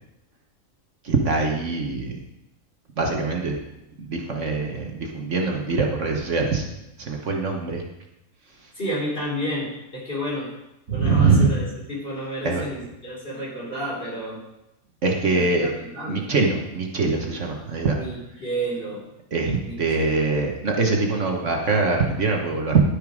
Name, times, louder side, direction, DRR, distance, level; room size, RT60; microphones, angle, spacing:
voice 1, 1.0-2.2 3.0-3.6 4.0-6.7 7.0-7.8 8.6-8.7 10.9-11.5 12.4-12.6 15.0-15.7 16.1-18.0 19.3-22.8, right 4 dB, 55° right, 1 dB, 1.5 m, -23 dB
voice 2, 8.8-10.5 10.9-14.4 15.3-16.2 17.9-19.0 19.6-20.2, equal, 40° left, -5 dB, 3.8 m, -31 dB
11.5 x 6.5 x 5.1 m, 0.91 s
omnidirectional pair, 1.5 m